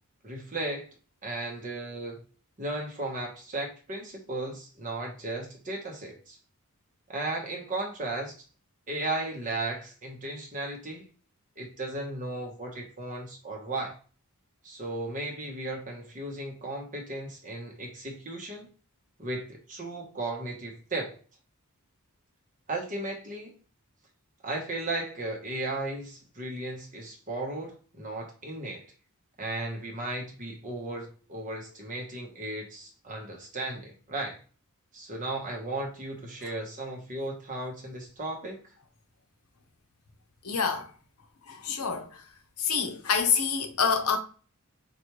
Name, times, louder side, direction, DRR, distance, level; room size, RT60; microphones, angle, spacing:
voice 1, 0.2-0.9 1.2-2.2 2.6-6.4 7.1-8.4 8.9-11.1 11.6-13.9 14.6-18.7 19.2-21.2 22.7-23.6 24.4-28.9 29.4-34.4 34.9-38.6, right 2 dB, 35° right, 1.1 m, -35 dB
voice 2, 40.4-40.9 41.5-42.2 42.6-44.2, left 6 dB, 75° left, 0.9 m, -27 dB
4.5 x 2.6 x 3.0 m
head